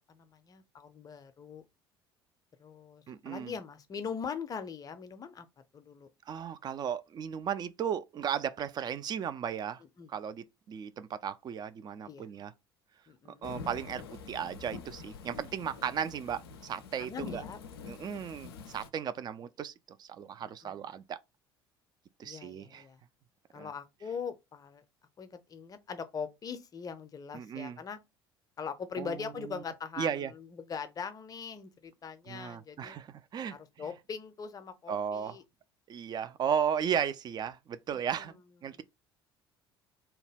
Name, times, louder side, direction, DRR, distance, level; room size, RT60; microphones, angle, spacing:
voice 1, 0.1-1.6 2.6-5.5 5.7-6.1 10.0-10.1 12.1-12.3 13.1-13.5 17.0-18.2 20.4-20.9 22.2-23.0 23.5-24.8 25.2-28.0 28.6-33.0 33.5-35.4 37.9-38.4 38.7-38.8, left 6 dB, 30° left, 0.5 m, -42 dB
voice 2, 3.1-3.5 6.3-9.8 10.1-12.5 13.4-17.4 17.8-21.2 22.2-22.8 23.6-23.7 27.3-27.8 29.0-29.2 29.5-29.6 30.0-30.3 32.3-33.6 34.9-35.4 35.9-38.8, right 8 dB, 35° right, 0.3 m, -35 dB
Thunderstorm / Rain, 13.4-18.9, left 5 dB, 75° left, 0.4 m, -46 dB
2.8 x 2.2 x 3.4 m
figure-of-eight pair, 60°, 13 cm